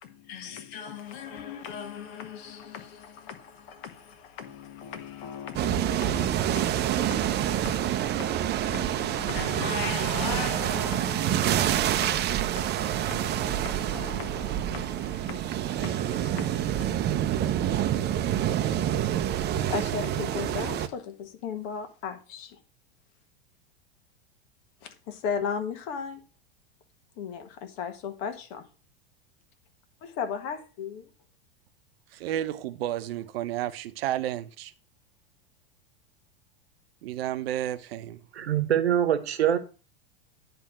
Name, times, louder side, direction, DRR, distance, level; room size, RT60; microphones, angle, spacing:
voice 1, 0.0-16.9 19.5-22.6 24.8-26.2 27.2-28.7 30.0-31.1, left 7 dB, 55° left, 1.6 m, -37 dB
sound 1, 5.5-20.9, right 11 dB, 35° right, 0.7 m, -27 dB
voice 2, 32.2-34.7 37.0-38.2, right 12 dB, 70° right, 0.8 m, -31 dB
voice 3, 38.3-39.6, right 10 dB, 90° right, 1.1 m, -24 dB
10.0 x 3.4 x 6.0 m
hypercardioid pair, 100°, 31 cm